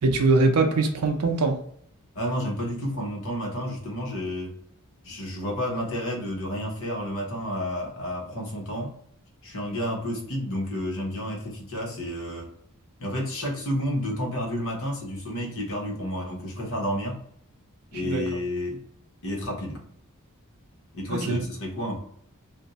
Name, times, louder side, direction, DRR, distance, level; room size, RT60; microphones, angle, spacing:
voice 1, 0.0-1.6 18.0-18.2 21.1-21.4, right 3 dB, 85° right, 0.5 m, -22 dB
voice 2, 2.1-4.6 5.0-8.9 9.4-12.5 13.0-17.2 17.9-18.8 19.2-19.8 20.9-22.0, equal, 65° left, 1.0 m, -30 dB
2.6 x 2.1 x 4.0 m
head